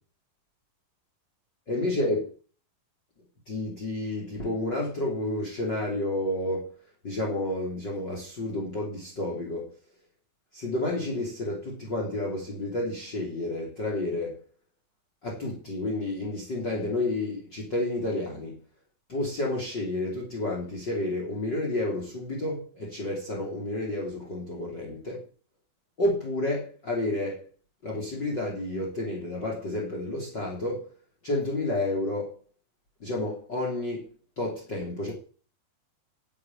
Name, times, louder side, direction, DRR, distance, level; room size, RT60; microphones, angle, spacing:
voice 1, 1.7-2.3 3.5-6.7 7.0-9.7 10.5-14.4 15.2-18.6 19.1-25.2 26.0-27.5 27.8-30.9 31.2-32.3 33.0-34.1 34.4-35.1, left 2 dB, 30° left, 3.9 m, -30 dB
12.0 x 8.6 x 9.1 m
omnidirectional pair, 4.1 m